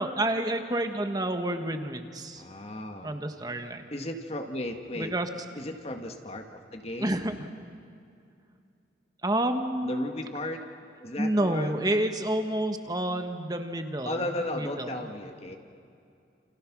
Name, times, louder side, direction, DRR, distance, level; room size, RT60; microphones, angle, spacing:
voice 1, 0.0-2.4 3.0-3.9 5.0-5.3 7.0-7.3 9.2-10.1 11.2-14.2 14.5-15.1, right 1 dB, 20° right, 7 dB, 1.5 m, -29 dB
voice 2, 2.3-3.2 3.9-5.1 5.5-6.4 6.7-7.2 9.8-10.6 11.0-11.9 14.1-15.6, left 1 dB, 35° left, 4 dB, 1.9 m, -35 dB
30.0 x 29.0 x 6.2 m, 2.5 s
head